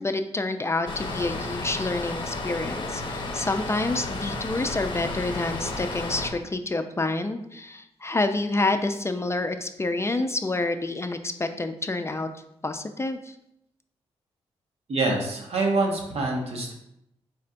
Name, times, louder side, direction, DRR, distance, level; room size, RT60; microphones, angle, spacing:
voice 1, 0.0-12.3 12.6-13.4, left 2 dB, 25° left, 7 dB, 0.4 m, -28 dB
sound 1, 0.9-6.3, left 2 dB, 45° left, 0.8 m, -32 dB
voice 2, 14.9-16.7, right 2 dB, 65° right, 0 dB, 1.1 m, -25 dB
4.3 x 4.1 x 2.5 m, 0.79 s
supercardioid pair, 50°, 11 cm